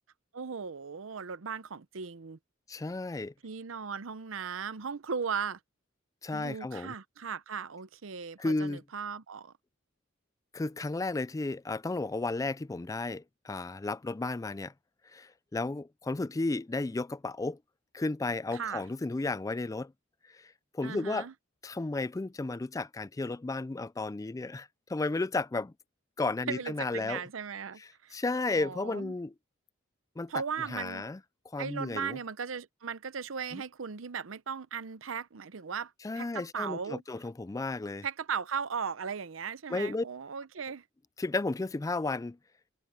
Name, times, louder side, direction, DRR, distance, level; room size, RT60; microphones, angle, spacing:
voice 1, 0.3-2.4 3.4-5.6 6.3-9.5 18.5-18.8 20.8-21.3 26.5-28.2 28.5-29.1 30.3-31.0 31.6-37.0 38.0-40.8, right 6 dB, 85° right, 0.7 m, -37 dB
voice 2, 2.7-3.3 6.2-6.9 8.4-8.8 10.5-14.7 15.0-17.6 17.9-19.9 20.3-21.3 21.6-25.7 26.2-27.2 27.8-29.3 30.2-30.3 30.7-31.2 31.5-32.2 33.5-33.6 36.0-38.0 39.7-40.0 41.2-42.4, left 3 dB, 15° left, 0.3 m, -33 dB
head